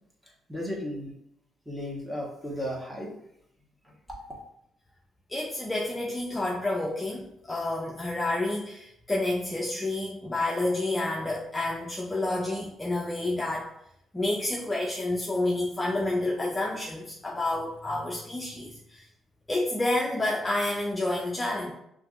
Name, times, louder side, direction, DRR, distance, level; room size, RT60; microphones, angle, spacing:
voice 1, 0.5-1.1 1.7-3.1 4.1-4.2, equal, 5° right, -3 dB, 1.3 m, -34 dB
voice 2, 5.3-13.7 14.1-19.1 19.5-21.7, left 2 dB, 20° left, -3 dB, 0.6 m, -29 dB
5.7 x 2.7 x 2.5 m, 0.76 s
cardioid pair, 90°, 0 cm